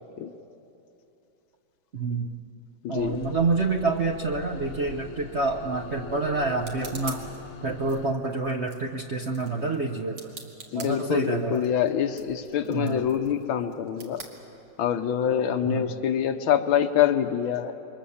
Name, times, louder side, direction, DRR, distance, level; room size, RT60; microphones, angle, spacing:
voice 1, 1.9-2.3 2.9-7.2 7.6-10.2 10.7-11.6 12.7-13.0 15.6-15.8, right 3 dB, 45° right, 3 dB, 1.0 m, -27 dB
voice 2, 2.8-3.2 10.7-14.2 14.8-17.8, left 9 dB, 85° left, 7 dB, 1.7 m, -25 dB
sound 1, 3.0-8.1, left 6 dB, 65° left, 1.6 m, -43 dB
sound 2, 5.3-15.1, right 3 dB, 75° right, 2.9 m, -47 dB
27.5 x 23.5 x 7.2 m, 2.8 s
omnidirectional pair, 2.2 m